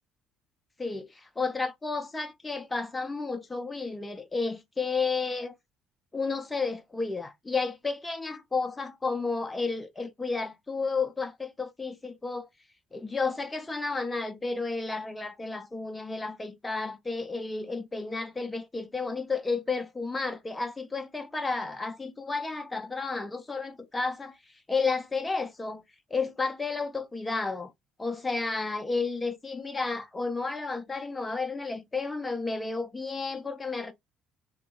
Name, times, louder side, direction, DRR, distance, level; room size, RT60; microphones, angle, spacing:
voice 1, 0.8-5.6 6.1-12.5 12.9-24.4 24.7-25.8 26.1-27.7 28.0-33.9, left 4 dB, 20° left, 0.5 m, -32 dB
2.8 x 2.6 x 2.2 m
figure-of-eight pair, 50°, 0 cm